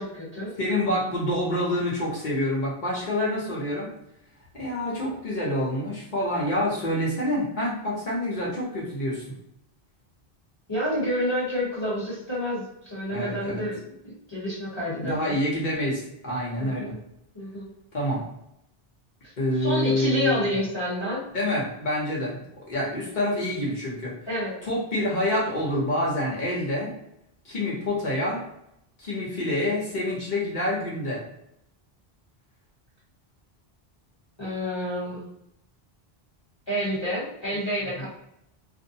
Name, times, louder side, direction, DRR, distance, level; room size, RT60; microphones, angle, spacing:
voice 1, 0.0-0.5 10.7-15.4 16.6-17.0 17.3-17.7 19.6-21.2 24.3-24.5 34.4-35.3 36.7-38.1, equal, 30° left, -8 dB, 1.1 m, -29 dB
voice 2, 0.6-3.9 4.5-9.2 13.1-13.6 15.0-16.9 17.9-18.3 19.4-20.5 21.3-24.1 24.6-26.9 27.4-28.4 29.0-31.2 38.0-38.1, left 1 dB, 50° left, -5 dB, 1.0 m, -27 dB
2.5 x 2.1 x 2.7 m, 0.80 s
omnidirectional pair, 1.0 m